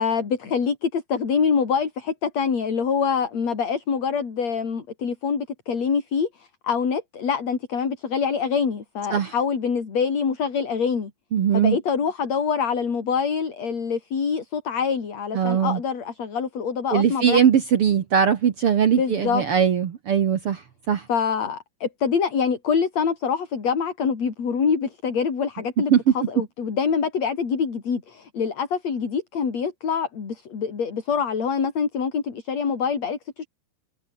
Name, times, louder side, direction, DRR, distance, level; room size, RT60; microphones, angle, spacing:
voice 1, 0.0-11.1 11.5-17.4 19.0-19.4 21.1-33.5, left 6 dB, 40° left, 4.5 m, -25 dB
voice 2, 11.3-11.8 15.3-15.8 16.9-20.6 20.9-21.0 25.9-26.0, right 8 dB, 75° right, 1.2 m, -20 dB
omnidirectional pair, 4.8 m